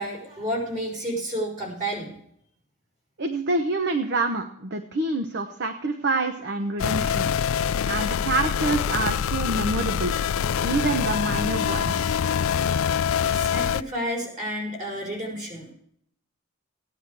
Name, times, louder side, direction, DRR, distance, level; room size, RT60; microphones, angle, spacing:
voice 1, 0.0-2.1 12.2-12.8 13.2-15.7, right 1 dB, 35° right, -2 dB, 4.8 m, -31 dB
voice 2, 3.2-7.3 7.8-10.1 10.6-12.2, right 2 dB, 50° right, 7 dB, 0.9 m, -27 dB
sound 1, 6.8-13.8, left 7 dB, 70° left, 0.4 m, -25 dB
15.0 x 10.0 x 4.8 m, 0.69 s
head